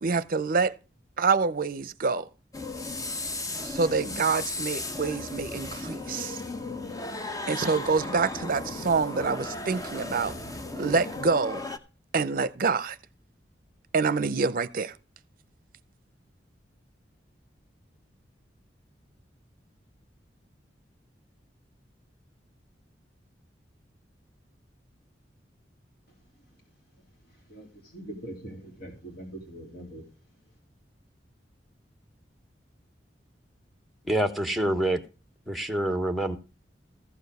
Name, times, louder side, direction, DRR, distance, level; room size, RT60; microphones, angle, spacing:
voice 1, 0.0-0.7 1.2-2.3 3.6-6.4 7.5-10.3 10.7-11.7 12.1-13.0 13.9-14.9, right 4 dB, 50° right, 0.6 m, -26 dB
sound 1, 2.5-11.8, left 2 dB, 20° left, 0.8 m, -35 dB
voice 2, 27.5-30.1, right 1 dB, 60° left, 3.6 m, -42 dB
voice 3, 34.0-35.0 35.5-36.4, right 1 dB, ahead, 1.1 m, -26 dB
14.5 x 5.0 x 6.7 m
head